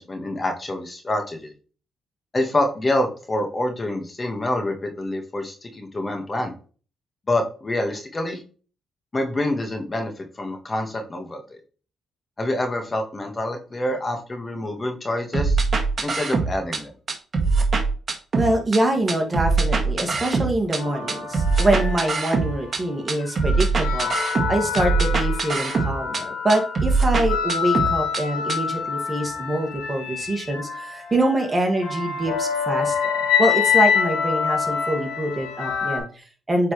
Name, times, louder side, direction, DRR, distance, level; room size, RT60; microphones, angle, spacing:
voice 1, 0.0-1.5 2.3-6.5 7.3-8.4 9.1-11.6 12.4-15.6 16.0-16.9, left 1 dB, 30° left, 4 dB, 1.6 m, -26 dB
sound 1, 15.3-16.8 17.1-18.8 19.1-20.8 21.1-22.8 23.1-26.2 26.5-28.2 28.5-28.6, right 4 dB, 45° right, 1.5 m, -22 dB
voice 2, 18.4-36.7, right 1 dB, 25° right, 2 dB, 2.1 m, -25 dB
sound 2, 20.8-22.7 23.2-36.0, left 7 dB, 90° left, 3.0 m, -26 dB
8.2 x 4.3 x 3.3 m, 0.38 s
supercardioid pair, 70°, 0 cm